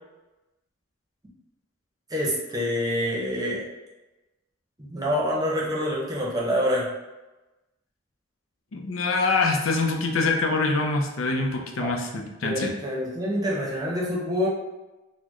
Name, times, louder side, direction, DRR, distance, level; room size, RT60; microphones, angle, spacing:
voice 1, 2.1-3.6 4.8-6.9 11.8-11.9 12.4-14.5, equal, 20° right, -4 dB, 0.8 m, -26 dB
voice 2, 8.7-12.7, left 3 dB, 85° left, 1 dB, 0.5 m, -25 dB
4.1 x 2.1 x 3.0 m, 1.1 s
head